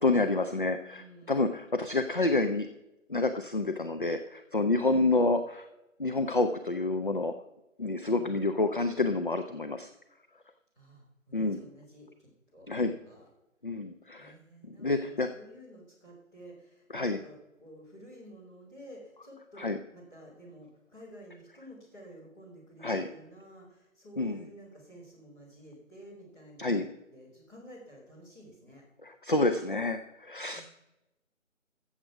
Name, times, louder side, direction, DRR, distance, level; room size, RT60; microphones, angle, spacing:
voice 1, 0.0-2.7 3.1-5.7 6.0-7.3 7.8-9.9 11.3-11.6 12.7-13.0 13.6-14.3 14.8-15.3 16.9-17.2 19.6-19.8 22.8-23.1 24.2-24.4 26.6-26.9 29.0-30.6, left 2 dB, 40° left, 8 dB, 0.5 m, -28 dB
voice 2, 0.9-1.5 4.8-5.0 8.1-8.4 10.8-13.2 14.2-28.8 30.5-30.6, right 1 dB, 10° left, -7 dB, 2.8 m, -51 dB
14.5 x 7.4 x 4.7 m, 0.93 s
figure-of-eight pair, 170°, 40 cm